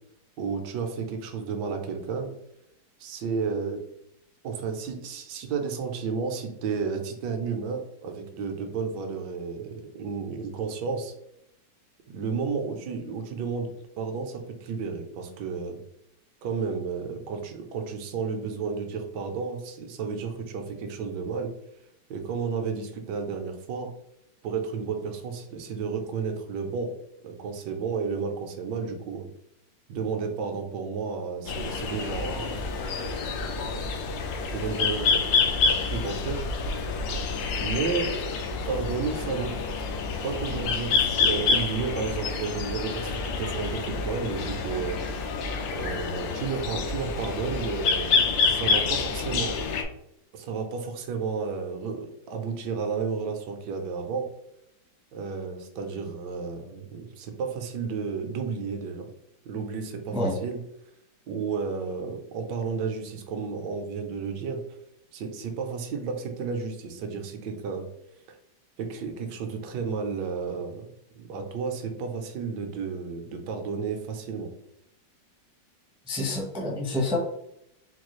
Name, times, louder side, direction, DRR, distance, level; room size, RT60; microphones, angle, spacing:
voice 1, 0.4-2.3 3.0-3.8 4.4-11.1 12.1-13.7 14.0-15.8 16.4-21.5 22.1-23.9 24.4-26.9 27.2-29.3 29.9-32.7 34.5-36.4 37.6-38.2 38.7-39.6 40.2-45.0 45.8-49.6 50.3-54.3 55.1-59.1 59.4-60.6 61.3-64.6 65.1-67.9 68.8-70.9 71.2-74.5, right 5 dB, 75° right, 4 dB, 1.2 m, -32 dB
sound 1, 31.5-49.8, left 4 dB, 85° left, 1.3 m, -28 dB
voice 2, 32.1-33.8 60.1-60.3 76.1-77.2, left 2 dB, 5° right, -4 dB, 0.4 m, -31 dB
4.4 x 2.3 x 3.0 m, 0.79 s
omnidirectional pair, 2.0 m